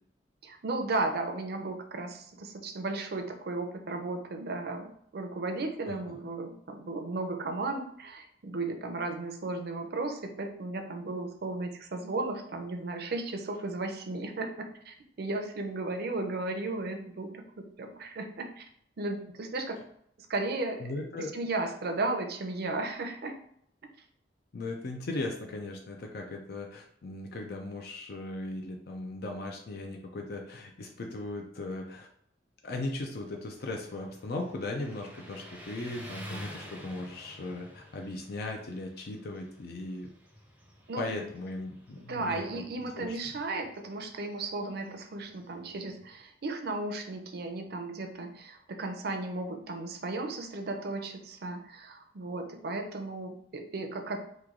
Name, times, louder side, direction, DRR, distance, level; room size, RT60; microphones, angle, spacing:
voice 1, 0.4-18.7 19.0-19.8 20.3-23.3 40.9-41.2 42.1-54.2, right 2 dB, 60° right, 5 dB, 0.5 m, -35 dB
voice 2, 20.8-21.3 24.5-32.1 32.6-40.1 41.0-42.6 43.0-43.2, left 2 dB, 60° left, 2 dB, 0.5 m, -38 dB
Motorcycle, 33.5-46.2, equal, 10° right, 0.6 m, -50 dB
3.1 x 2.3 x 3.6 m, 0.66 s
head